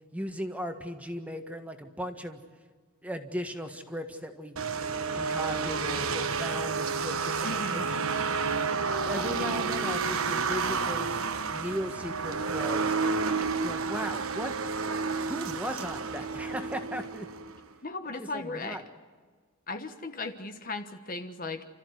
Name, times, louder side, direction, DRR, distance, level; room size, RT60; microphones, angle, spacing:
voice 1, 0.1-2.4 3.0-4.6 5.1-8.1 9.1-11.2 11.5-13.0 13.5-14.5 15.2-17.3 18.2-18.8, equal, 5° right, 5 dB, 1.6 m, -37 dB
sound 1, 4.6-17.6, right 4 dB, 75° right, 1.3 m, -30 dB
voice 2, 7.4-7.9 17.8-18.8 19.7-21.6, left 3 dB, 40° left, 7 dB, 1.3 m, -36 dB
30.0 x 14.0 x 9.6 m, 1.5 s
head